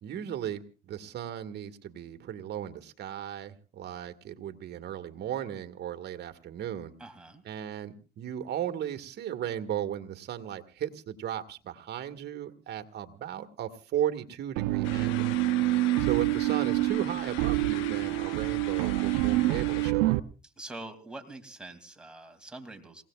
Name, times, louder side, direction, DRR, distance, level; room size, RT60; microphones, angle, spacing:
voice 1, 0.0-6.9 7.4-15.3 16.0-20.2, right 10 dB, 55° right, 7 dB, 1.7 m, -36 dB
voice 2, 7.0-7.4 20.6-23.0, right 2 dB, 5° right, 4 dB, 2.6 m, -44 dB
sound 1, 14.6-20.2, right 17 dB, 85° right, 0.7 m, -27 dB
sound 2, 14.8-19.9, left 15 dB, 75° left, 0.9 m, -43 dB
28.5 x 17.0 x 2.4 m, 0.35 s
supercardioid pair, 85°, 20 cm